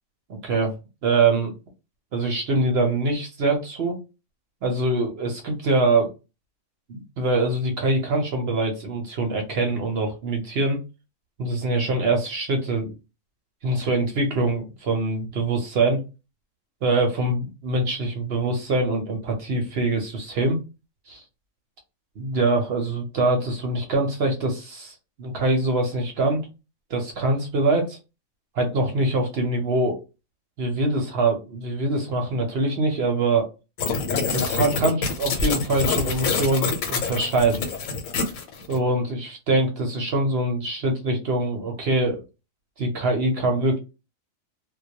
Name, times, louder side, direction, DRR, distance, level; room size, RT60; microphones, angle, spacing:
voice 1, 0.3-0.7 1.0-1.5 2.1-4.0 4.6-6.1 6.9-10.8 11.4-12.9 13.6-16.0 16.8-20.6 21.1-21.2 22.2-26.5 26.9-28.0 28.5-30.0 30.6-33.5 34.3-37.7 38.7-42.2 42.8-43.8, right 2 dB, 60° right, 2 dB, 0.8 m, -24 dB
sound 1, 33.8-38.8, left 4 dB, 85° left, 1.0 m, -26 dB
2.2 x 2.1 x 2.7 m, 0.28 s
omnidirectional pair, 1.4 m